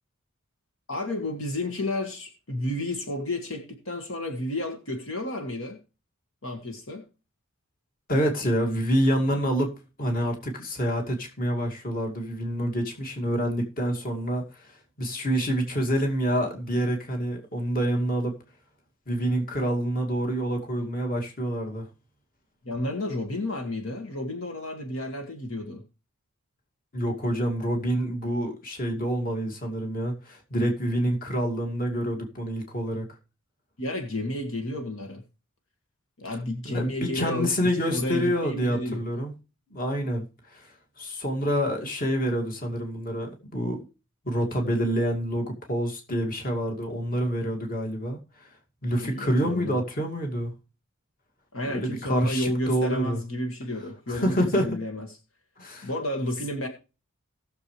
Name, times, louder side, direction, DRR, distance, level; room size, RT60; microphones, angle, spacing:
voice 1, 0.9-5.8 6.4-7.1 22.6-25.8 33.8-35.2 36.2-39.0 49.0-49.8 51.5-55.1 55.8-56.7, left 1 dB, 70° left, 2.0 m, -31 dB
voice 2, 8.1-18.4 19.1-21.9 26.9-33.1 36.6-39.3 39.7-43.8 44.2-48.5 48.8-50.5 51.7-53.2 54.1-54.8 55.6-55.9, equal, 40° left, 2.4 m, -27 dB
18.5 x 7.0 x 3.3 m
head